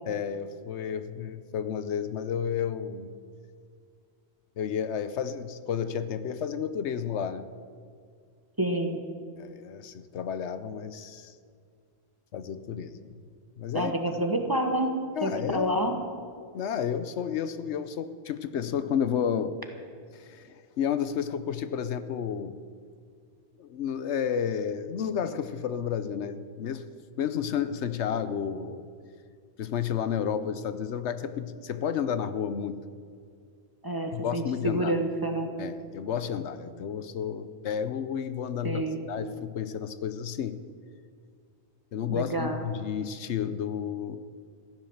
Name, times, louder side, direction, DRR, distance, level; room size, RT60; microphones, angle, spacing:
voice 1, 0.1-3.1 4.6-7.5 9.4-11.3 12.3-13.1 13.6-14.0 15.2-16.0 16.5-19.6 20.1-22.6 23.6-26.8 27.2-28.8 29.6-32.8 34.1-34.9 35.6-40.6 41.9-44.2, left 8 dB, 90° left, 12 dB, 1.1 m, -31 dB
voice 2, 8.6-9.0 13.7-14.9 15.2-15.9 33.8-35.5 38.6-39.0 42.1-42.6, right 1 dB, 20° right, 3 dB, 1.2 m, -28 dB
14.5 x 11.0 x 7.2 m, 2.1 s
omnidirectional pair, 1.1 m